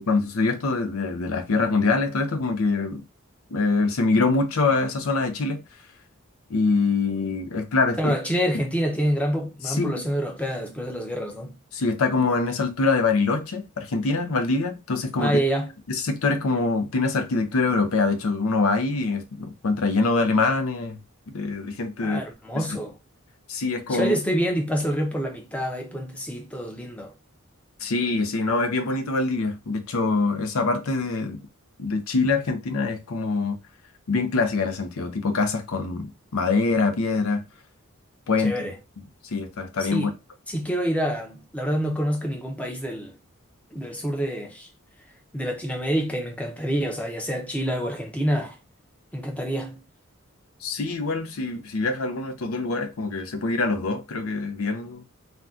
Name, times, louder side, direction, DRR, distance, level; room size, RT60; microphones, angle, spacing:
voice 1, 0.1-3.0 3.5-5.6 6.5-8.2 9.6-9.9 11.7-15.4 15.9-21.0 21.3-22.2 22.5-22.6 23.5-24.1 27.8-31.4 31.8-33.6 34.1-37.4 38.3-38.6 39.2-40.1 50.6-55.0, left 3 dB, 85° left, 0.6 m, -24 dB
voice 2, 8.0-11.6 15.2-15.7 22.0-23.0 23.9-27.1 38.4-38.7 39.8-40.1 40.5-43.1 43.7-44.7 45.3-48.6 49.1-49.8, equal, 5° left, 0.5 m, -27 dB
2.6 x 2.2 x 3.5 m
head